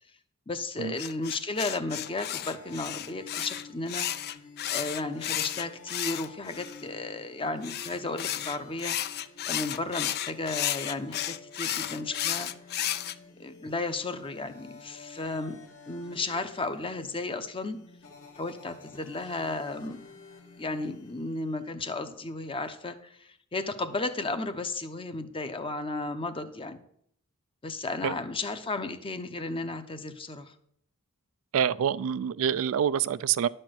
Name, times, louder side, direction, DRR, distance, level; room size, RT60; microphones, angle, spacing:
voice 1, 0.5-4.2 4.7-9.2 9.5-12.5 13.4-15.6 15.9-17.8 18.4-20.0 20.6-26.8 27.6-30.5, left 2 dB, 25° left, 9 dB, 0.7 m, -34 dB
sound 1, 1.0-6.8 7.6-13.1, left 11 dB, 45° left, 0.4 m, -33 dB
sound 2, 2.0-21.7, left 3 dB, 65° left, 1.9 m, -50 dB
voice 2, 31.5-33.5, right 8 dB, 65° right, 16 dB, 0.3 m, -26 dB
10.5 x 4.4 x 7.7 m, 0.69 s
head